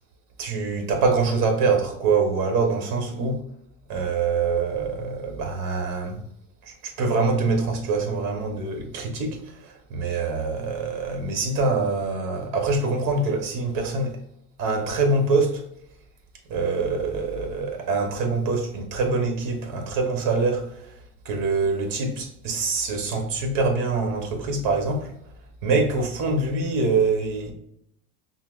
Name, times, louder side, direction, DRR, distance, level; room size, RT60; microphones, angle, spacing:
voice 1, 0.4-3.4 3.9-6.2 6.6-14.2 14.6-15.6 16.5-20.9 21.2-25.1 25.6-27.5, right 4 dB, 45° right, 1.1 m, -24 dB
5.6 x 2.0 x 2.4 m
supercardioid pair, 125°, 46 cm